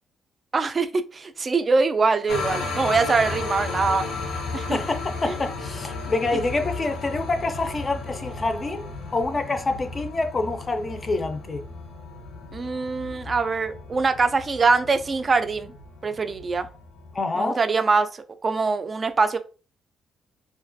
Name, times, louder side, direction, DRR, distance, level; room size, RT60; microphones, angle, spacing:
voice 1, 0.5-4.0 4.5-4.8 5.3-5.4 12.5-15.7 16.0-16.7 17.4-18.1 18.4-19.4, right 4 dB, 35° right, 0.3 m, -23 dB
sound 1, 2.3-17.2, left 3 dB, 85° left, 0.6 m, -34 dB
voice 2, 4.7-8.8 9.1-11.6 17.1-17.6, left 3 dB, 30° left, 0.4 m, -26 dB
2.3 x 2.2 x 2.5 m
cardioid pair, 90°, 0 cm